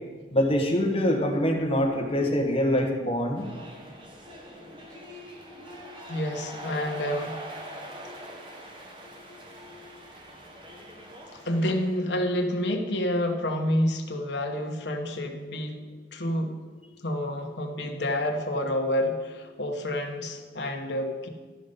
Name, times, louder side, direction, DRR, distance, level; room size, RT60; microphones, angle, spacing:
voice 1, 0.3-3.4, equal, 30° left, 1 dB, 1.3 m, -24 dB
sound 1, 3.3-12.1, equal, 25° right, 1.1 m, -43 dB
voice 2, 6.1-7.4 11.3-15.8 16.1-16.5 17.0-21.3, left 1 dB, 70° left, 3 dB, 1.1 m, -28 dB
12.5 x 5.4 x 5.4 m, 1.4 s
head